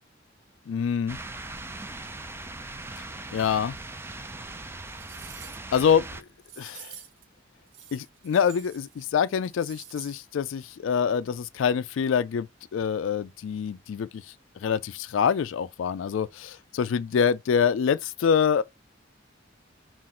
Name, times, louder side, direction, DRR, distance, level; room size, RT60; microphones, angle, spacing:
voice 1, 0.7-1.2 3.3-3.7 5.7-6.0 6.6-6.9 7.9-12.5 12.7-14.2 14.6-18.6, left 7 dB, 80° left, 0.3 m, -25 dB
sound 1, 1.1-6.2, right 2 dB, 10° right, 0.4 m, -40 dB
sound 2, 4.3-4.4 4.8-5.8 6.4-7.2 7.7-9.1 9.3-10.2 10.5-10.6, right 9 dB, 70° right, 0.8 m, -48 dB
5.8 x 2.5 x 3.7 m
head